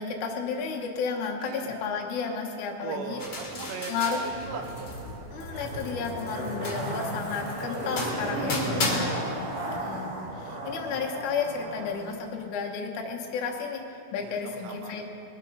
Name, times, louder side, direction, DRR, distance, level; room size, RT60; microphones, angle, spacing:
voice 1, 0.0-3.2 3.9-4.2 5.3-9.5 9.8-15.0, left 5 dB, 85° left, 1 dB, 1.7 m, -32 dB
voice 2, 1.4-1.8 2.8-4.9 8.9-9.6 14.2-15.0, right 5 dB, 75° right, 4 dB, 3.0 m, -39 dB
sound 1, 3.2-5.1 5.4-9.0, left 3 dB, 50° left, 1.4 m, -35 dB
Zipper (clothing), 4.3-11.9 12.2-12.3, right 1 dB, 50° right, 3.5 m, -34 dB
21.5 x 9.0 x 5.5 m, 2.7 s
omnidirectional pair, 5.4 m